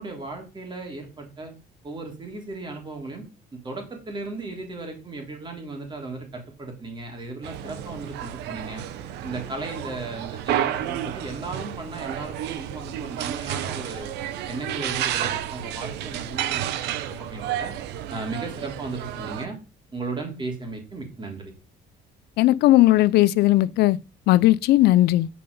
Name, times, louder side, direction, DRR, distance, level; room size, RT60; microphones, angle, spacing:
voice 1, 0.0-1.5 1.8-3.2 3.5-8.8 9.2-14.2 14.5-17.7 18.1-19.6 19.9-21.5, right 3 dB, 25° right, 3.3 m, -36 dB
sound 1, 7.4-19.4, right 11 dB, 85° right, 0.8 m, -31 dB
voice 2, 22.4-24.0 24.3-25.3, left 16 dB, 75° left, 0.4 m, -17 dB
7.6 x 5.3 x 5.4 m
cardioid pair, 110°, 17 cm